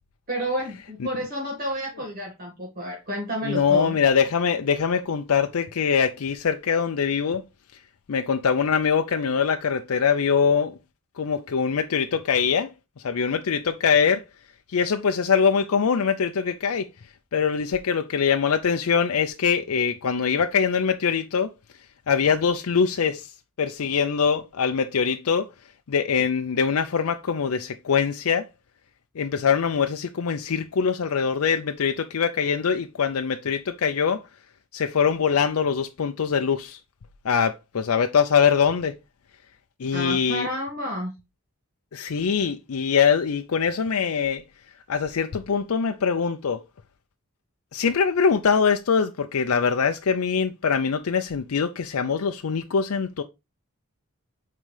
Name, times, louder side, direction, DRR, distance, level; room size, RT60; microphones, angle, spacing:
voice 1, 0.3-4.0 39.9-41.1, equal, 40° right, 1.8 m, -30 dB
voice 2, 3.4-7.4 8.1-10.8 11.2-12.7 13.0-14.2 14.7-16.9 17.3-21.5 22.1-23.3 23.6-25.5 25.9-28.5 29.2-34.2 34.7-36.8 37.2-39.0 39.8-40.5 41.9-44.4 44.9-46.6 47.7-53.2, left 6 dB, 75° left, 0.5 m, -23 dB
8.8 x 3.8 x 3.3 m
head